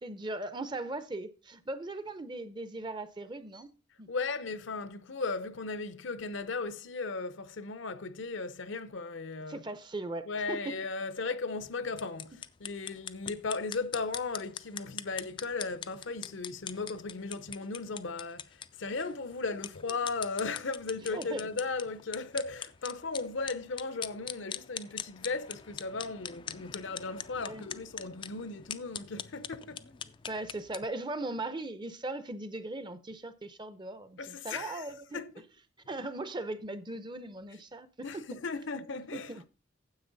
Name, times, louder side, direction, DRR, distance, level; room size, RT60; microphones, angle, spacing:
voice 1, 0.0-3.7 4.0-4.1 9.5-10.7 21.1-21.5 27.5-27.6 30.3-35.2 35.9-38.2 39.1-39.4, right 2 dB, 20° right, 0.6 m, -39 dB
voice 2, 4.1-9.6 10.3-29.9 34.2-34.9 35.1-35.4 38.0-39.5, left 3 dB, 60° left, 0.7 m, -36 dB
sound 1, 11.9-30.9, left 8 dB, 25° left, 0.4 m, -43 dB
9.6 x 7.7 x 4.0 m
head